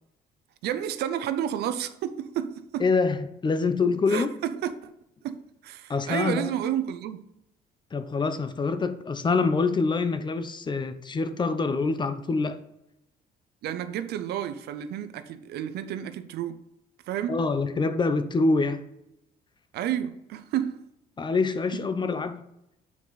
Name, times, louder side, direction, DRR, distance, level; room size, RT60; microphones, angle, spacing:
voice 1, 0.6-2.9 4.1-4.9 5.2-7.2 13.6-16.6 17.1-17.4 19.7-20.8 21.7-21.8, right 10 dB, 75° right, 0.7 m, -31 dB
voice 2, 2.8-4.3 5.9-6.5 7.9-12.6 17.3-18.8 21.2-22.4, left 4 dB, 25° left, 0.8 m, -25 dB
8.3 x 4.8 x 4.1 m
cardioid pair, 110°, 17 cm